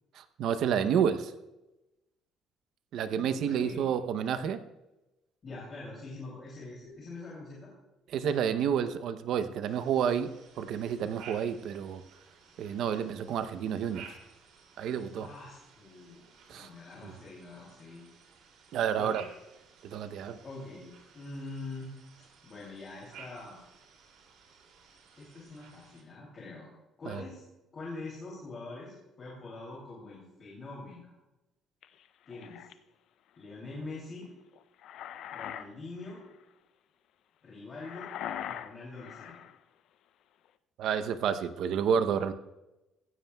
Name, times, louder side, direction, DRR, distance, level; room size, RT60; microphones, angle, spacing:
voice 1, 0.1-1.3 2.9-4.6 8.1-10.3 10.6-12.0 12.6-14.1 14.8-15.3 16.5-16.7 17.0-17.1 18.7-19.2 19.8-20.4 27.1-27.2 40.8-42.3, right 8 dB, 60° right, 12 dB, 0.6 m, -30 dB
voice 2, 3.0-3.8 5.4-7.7 15.1-16.2 16.5-18.0 18.9-19.2 20.4-21.9 22.4-23.6 25.2-26.7 27.0-27.4 27.7-31.1 32.3-32.7 33.4-34.3 35.3-36.2 37.4-38.1 38.4-39.4, left 3 dB, 30° left, -5 dB, 2.7 m, -44 dB
sound 1, 9.7-26.0, right 6 dB, 75° right, 2.5 m, -55 dB
sound 2, 31.8-32.7 34.5-35.7 36.0-36.3 37.8-39.6, left 10 dB, 60° left, 0.5 m, -41 dB
16.0 x 15.0 x 2.3 m, 1.0 s
cardioid pair, 165°, 0 cm